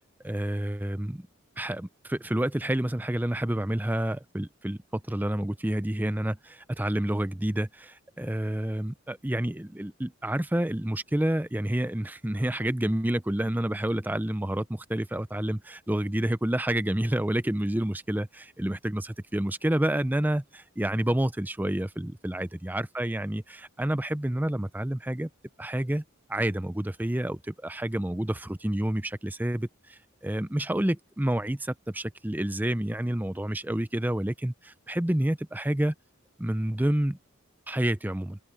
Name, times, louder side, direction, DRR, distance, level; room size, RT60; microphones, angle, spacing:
voice 1, 0.2-1.3 1.6-25.3 25.6-26.0 26.3-35.9 36.4-37.2 37.7-38.4, right 1 dB, 10° right, 0.5 m, -29 dB
head